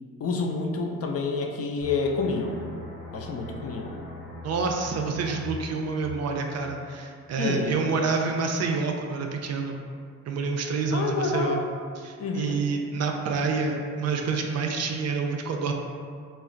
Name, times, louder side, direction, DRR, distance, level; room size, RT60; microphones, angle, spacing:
voice 1, 0.2-2.5 3.1-3.9 7.4-7.8 10.9-11.6 12.2-12.6, left 4 dB, 50° left, 1 dB, 0.4 m, -28 dB
sound 1, 1.8-7.2 7.5-7.8, left 1 dB, 85° left, 1.1 m, -41 dB
voice 2, 4.4-9.8 10.3-11.6 12.0-15.7, right 4 dB, 55° right, 2 dB, 0.4 m, -28 dB
2.3 x 2.0 x 3.7 m, 2.2 s
supercardioid pair, 55°, 32 cm